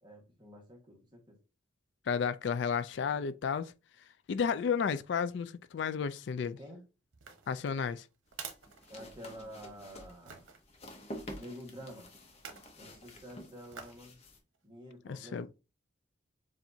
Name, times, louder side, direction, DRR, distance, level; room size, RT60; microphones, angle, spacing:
voice 1, 0.0-1.4 6.4-6.9 8.9-10.5 11.3-12.1 12.8-14.2 14.6-15.5, equal, 25° right, 1.4 m, -49 dB
voice 2, 2.1-3.7 4.3-6.6 7.5-8.0 15.1-15.5, left 6 dB, 60° left, 0.3 m, -32 dB
sound 1, 7.1-9.6 10.3-10.6 12.3-12.8 13.7-14.1 14.6-14.7, right 6 dB, 80° right, 0.9 m, -48 dB
sound 2, 8.3-14.4, equal, 35° left, 0.9 m, -49 dB
7.1 x 2.6 x 2.7 m
head